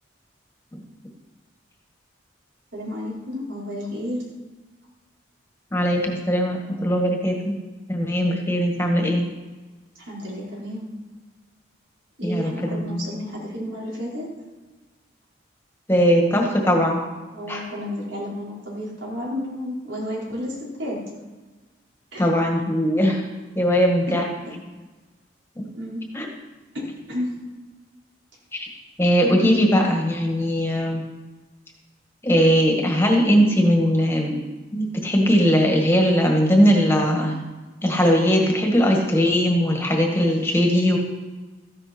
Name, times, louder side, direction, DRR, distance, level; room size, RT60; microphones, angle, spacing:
voice 1, 2.7-4.2 10.0-10.8 12.2-14.3 16.6-16.8 17.3-21.0 22.1-22.3 24.5-24.6 25.8-26.0 27.1-27.3, left 1 dB, 75° right, -5 dB, 4.7 m, -31 dB
voice 2, 5.7-7.6 7.9-9.3 12.2-13.0 15.9-17.0 17.5-17.6 22.2-23.2 23.5-24.3 26.1-26.3 28.5-28.7 29.0-31.0 32.2-34.3 34.7-37.4 37.8-41.0, equal, 15° left, 1 dB, 1.7 m, -20 dB
14.0 x 11.0 x 4.4 m, 1.2 s
head